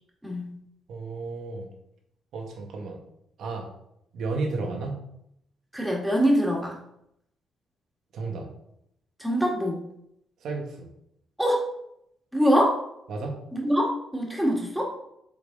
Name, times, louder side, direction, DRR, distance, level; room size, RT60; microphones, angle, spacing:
voice 1, 0.9-1.7 2.3-3.0 3.4-3.7 4.1-5.0 8.1-8.5 10.4-10.9 13.1-13.4, right 3 dB, 70° right, 2 dB, 1.5 m, -32 dB
voice 2, 5.7-6.8 9.2-9.8 11.4-11.7 12.3-12.8 13.5-14.9, equal, 5° right, -2 dB, 2.0 m, -24 dB
6.7 x 3.8 x 4.0 m, 0.75 s
cardioid pair, 90°, 0 cm